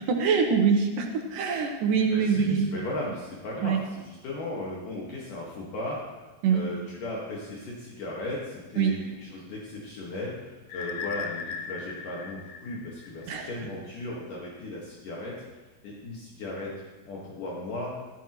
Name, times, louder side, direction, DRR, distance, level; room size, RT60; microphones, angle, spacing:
voice 1, 0.1-2.6 3.6-3.8 6.4-6.6 8.8-8.9 13.3-13.5, right 6 dB, 70° right, 3 dB, 2.6 m, -24 dB
voice 2, 2.1-6.0 6.5-15.3 15.8-16.7 17.0-17.9, left 2 dB, 65° left, -4 dB, 3.1 m, -36 dB
sound 1, 10.7-13.5, left 6 dB, 85° left, 2.7 m, -37 dB
14.5 x 13.5 x 3.0 m, 1.2 s
omnidirectional pair, 4.2 m